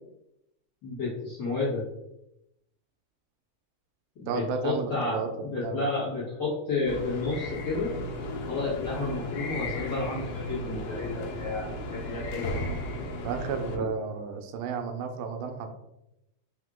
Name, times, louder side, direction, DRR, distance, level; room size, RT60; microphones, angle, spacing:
voice 1, 0.8-1.8 4.1-7.9 8.5-12.6 13.7-13.8, left 3 dB, 45° left, -9 dB, 1.5 m, -31 dB
voice 2, 4.3-5.9 13.2-15.8, right 5 dB, 85° right, 6 dB, 2.3 m, -33 dB
sound 1, 6.9-13.8, left 1 dB, 75° left, 2.1 m, -35 dB
5.4 x 2.7 x 3.6 m, 0.87 s
omnidirectional pair, 3.9 m